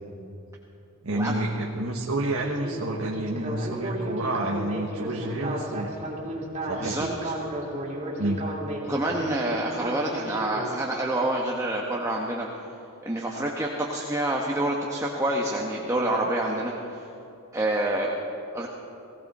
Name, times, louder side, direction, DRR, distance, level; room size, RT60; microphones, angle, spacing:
voice 1, 1.0-6.0 6.7-7.1 8.2-8.4, right 2 dB, 85° right, 0 dB, 1.2 m, -29 dB
Speech synthesizer, 2.4-10.7, right 1 dB, 35° right, 2.9 m, -33 dB
voice 2, 6.8-7.3 8.9-12.5 13.0-17.1 17.5-18.1 18.5-18.7, right 1 dB, 15° right, -2 dB, 1.1 m, -27 dB
19.0 x 16.5 x 4.2 m, 2.9 s
head